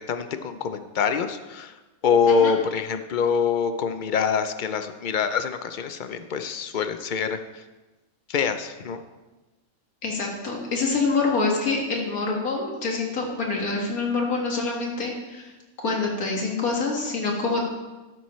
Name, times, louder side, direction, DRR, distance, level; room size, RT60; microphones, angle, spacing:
voice 1, 0.0-1.8 2.0-7.6 8.3-9.0, left 6 dB, 65° left, 9 dB, 0.5 m, -25 dB
voice 2, 10.0-15.5 15.8-17.6, left 3 dB, 90° left, 0 dB, 2.2 m, -26 dB
12.5 x 10.0 x 3.1 m, 1.2 s
omnidirectional pair, 1.5 m